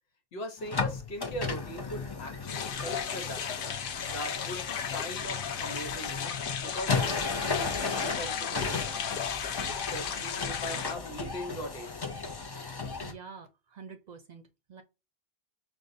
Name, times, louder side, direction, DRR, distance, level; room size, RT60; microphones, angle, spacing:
voice 1, 0.3-3.5 4.1-7.3 7.5-12.1, equal, 80° left, 1.2 m, -40 dB
sound 1, 0.6-13.1, left 4 dB, 30° left, 0.5 m, -35 dB
sound 2, 2.5-10.9, left 7 dB, 65° left, 0.7 m, -35 dB
voice 2, 13.0-14.4 14.7-14.8, right 6 dB, 50° right, 0.6 m, -47 dB
5.3 x 2.4 x 2.6 m
omnidirectional pair, 1.0 m